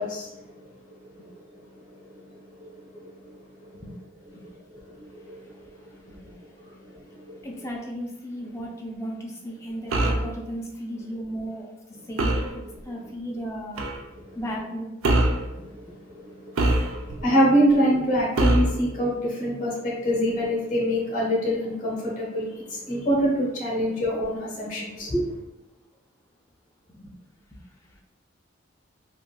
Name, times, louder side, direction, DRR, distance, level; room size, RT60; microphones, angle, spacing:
voice 1, 0.0-3.8 4.3-7.5 12.0-12.1 12.9-13.0 14.1-14.4 15.3-25.4, equal, 40° left, -4 dB, 1.0 m, -27 dB
voice 2, 7.4-13.8 14.3-14.9 26.9-27.1 27.5-27.6, equal, 15° left, -1 dB, 0.4 m, -35 dB
sound 1, 9.9-10.3 12.2-12.5 13.8-14.0 15.0-15.4 16.6-17.2 18.4-18.8, right 1 dB, 85° right, 0.4 m, -22 dB
3.4 x 2.5 x 2.2 m, 0.97 s
head